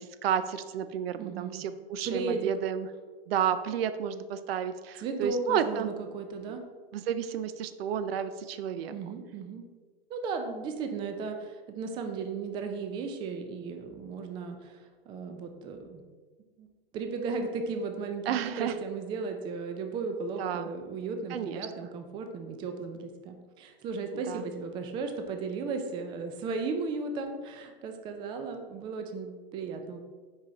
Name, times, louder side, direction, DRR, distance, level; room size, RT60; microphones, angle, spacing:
voice 1, 0.0-2.9 3.3-5.9 6.9-8.9 18.3-18.8 20.4-20.7 21.3-21.7 24.3-24.4, right 8 dB, 75° right, 12 dB, 0.5 m, -31 dB
voice 2, 1.2-1.6 2.0-2.5 5.0-6.6 8.9-9.6 10.1-14.8 15.1-16.0 16.6-16.7 16.9-30.0, right 4 dB, 15° right, 5 dB, 0.3 m, -35 dB
5.3 x 4.9 x 4.0 m, 1.4 s
supercardioid pair, 145°, 31 cm